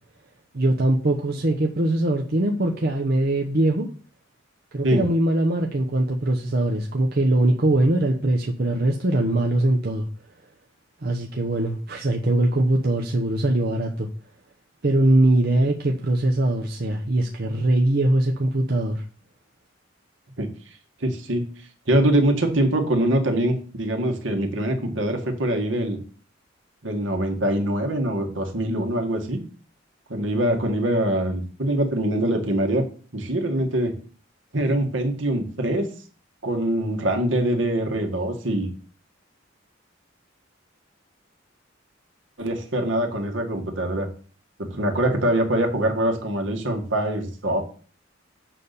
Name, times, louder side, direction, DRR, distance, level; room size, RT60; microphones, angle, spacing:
voice 1, 0.5-3.9 4.7-10.1 11.0-14.1 14.8-19.0, right 1 dB, 50° right, 1 dB, 0.8 m, -22 dB
voice 2, 21.0-21.5 21.9-26.0 26.8-29.4 30.1-32.9 33.1-33.9 34.5-35.9 36.4-38.7 42.4-44.1 44.6-47.6, right 1 dB, 70° right, 4 dB, 1.8 m, -23 dB
7.4 x 4.2 x 6.8 m, 0.40 s
head